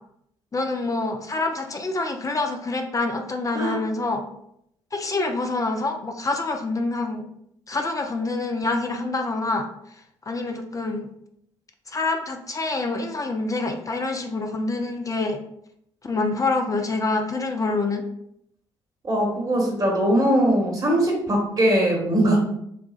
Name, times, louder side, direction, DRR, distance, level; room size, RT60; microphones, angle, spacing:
voice 1, 0.5-4.2 4.9-7.2 7.7-9.7 10.3-11.1 11.9-15.4 16.0-18.0, left 3 dB, 25° left, 4 dB, 0.5 m, -26 dB
voice 2, 19.0-22.4, right 1 dB, 30° right, -2 dB, 1.3 m, -21 dB
6.6 x 2.3 x 2.3 m, 0.74 s
figure-of-eight pair, 45°, 14 cm